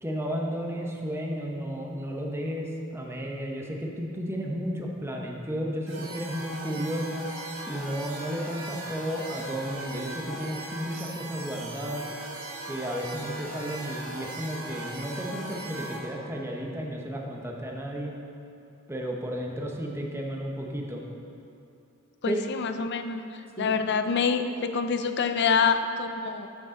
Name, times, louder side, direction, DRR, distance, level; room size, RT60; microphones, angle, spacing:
voice 1, 0.0-7.3 7.7-12.1 12.7-18.1 18.9-21.0 22.3-22.4 23.6-23.7, equal, 10° right, 0 dB, 0.9 m, -33 dB
sound 1, 5.9-16.0, right 1 dB, 90° right, 1.8 m, -39 dB
voice 2, 22.2-23.2 23.6-26.5, left 5 dB, 55° left, 8 dB, 0.5 m, -26 dB
12.5 x 6.9 x 3.8 m, 2.8 s
head